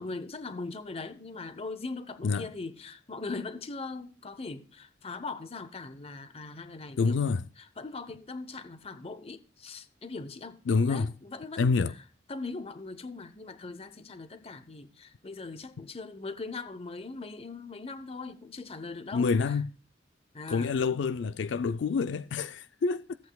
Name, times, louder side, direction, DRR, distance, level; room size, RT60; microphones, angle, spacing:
voice 1, 0.0-7.2 7.8-10.6 10.9-11.8 12.3-19.5 20.3-20.8, left 3 dB, 35° left, 0.8 m, -40 dB
voice 2, 7.0-7.4 10.7-11.1 11.6-11.9 19.1-19.7 20.5-23.2, left 4 dB, 90° left, 0.4 m, -27 dB
15.0 x 8.1 x 2.3 m
head